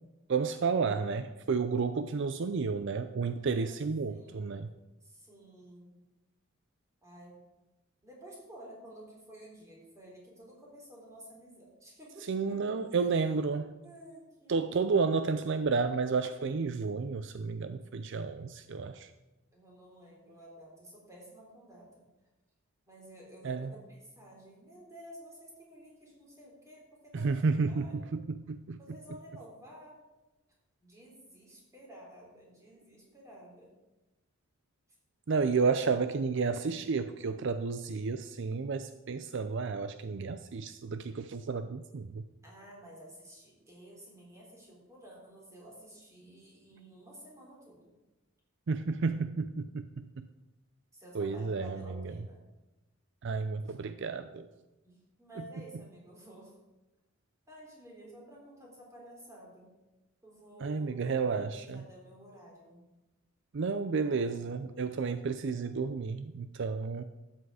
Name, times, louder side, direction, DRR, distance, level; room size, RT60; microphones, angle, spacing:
voice 1, 0.3-4.7 12.3-13.7 14.5-19.1 23.4-23.7 27.1-28.8 35.3-42.2 48.7-50.3 51.1-52.2 53.2-54.5 60.6-61.8 63.5-67.0, right 4 dB, 60° right, 10 dB, 0.5 m, -31 dB
voice 2, 4.1-4.5 5.0-6.0 7.0-7.4 8.0-13.0 13.8-14.8 19.5-22.0 22.9-28.1 28.8-30.0 30.8-33.7 35.6-35.7 42.4-47.9 50.9-52.4 54.8-56.5 57.5-59.7 60.2-62.9, right 1 dB, 15° right, -3 dB, 3.7 m, -52 dB
12.5 x 8.3 x 4.9 m, 1.1 s
head